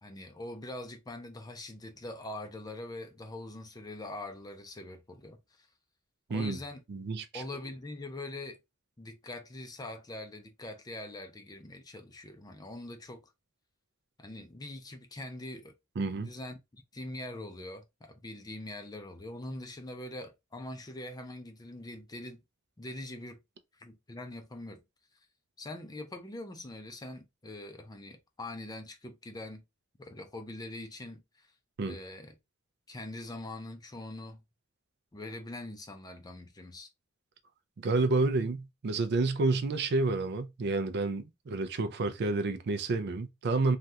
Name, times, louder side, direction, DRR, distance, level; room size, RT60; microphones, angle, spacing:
voice 1, 0.0-5.7 6.3-6.8 7.3-8.6 9.0-13.2 14.2-15.7 16.2-22.4 22.8-23.4 23.8-24.8 25.6-29.6 30.0-31.5 31.8-32.4 32.9-34.4 35.1-36.9, left 1 dB, 20° left, 0.5 m, -43 dB
voice 2, 6.9-7.4 16.0-16.3 31.8-32.0 37.8-43.8, right 3 dB, 55° right, 0.4 m, -29 dB
3.3 x 2.3 x 2.7 m
head